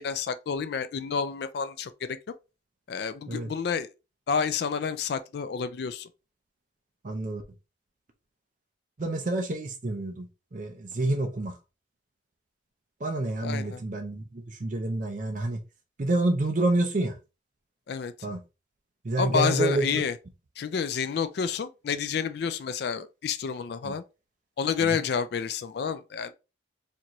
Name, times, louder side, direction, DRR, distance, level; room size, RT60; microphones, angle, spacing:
voice 1, 0.0-1.9 2.9-3.9 4.3-6.1 13.4-13.8 17.9-18.1 19.2-20.2 20.6-24.0 24.6-26.3, left 6 dB, 55° left, 0.3 m, -29 dB
voice 2, 7.0-7.4 9.0-11.6 13.0-15.6 16.0-17.2 18.2-18.4 19.0-20.0 23.8-23.9 24.8-25.0, right 2 dB, 40° right, 0.5 m, -28 dB
4.3 x 2.5 x 2.9 m
head